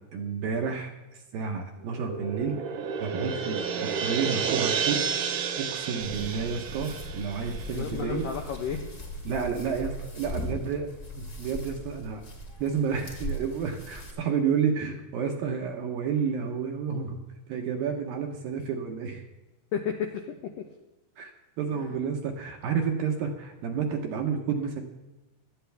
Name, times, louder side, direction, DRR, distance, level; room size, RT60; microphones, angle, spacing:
voice 1, 0.1-0.9 1.3-2.6 3.0-5.0 5.6-8.3 9.3-10.9 11.2-12.2 12.6-17.2 17.5-19.2 21.2-21.3 21.6-24.8, right 6 dB, 70° right, 3 dB, 2.4 m, -30 dB
sound 1, 1.8-8.4, right 6 dB, 85° right, 1.8 m, -31 dB
sound 2, 6.0-14.1, equal, 30° left, 1.4 m, -39 dB
voice 2, 7.7-8.8 19.7-20.3 21.7-22.0, left 7 dB, 85° left, 3 dB, 1.9 m, -32 dB
17.5 x 12.5 x 3.5 m, 1.1 s
omnidirectional pair, 5.1 m